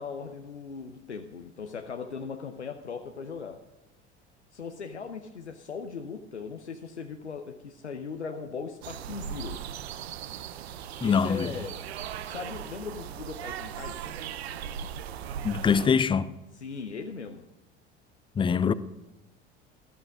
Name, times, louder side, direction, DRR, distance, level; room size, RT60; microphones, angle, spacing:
voice 1, 0.0-3.6 4.5-9.6 11.0-11.8 12.2-14.1 16.6-17.5, left 5 dB, 85° left, 0.8 m, -39 dB
sound 1, 8.8-15.9, right 9 dB, 65° right, 0.8 m, -38 dB
voice 2, 11.0-11.5 15.4-16.3 18.4-18.7, left 6 dB, 15° left, 0.5 m, -23 dB
13.5 x 13.0 x 3.6 m
figure-of-eight pair, 70°, 34 cm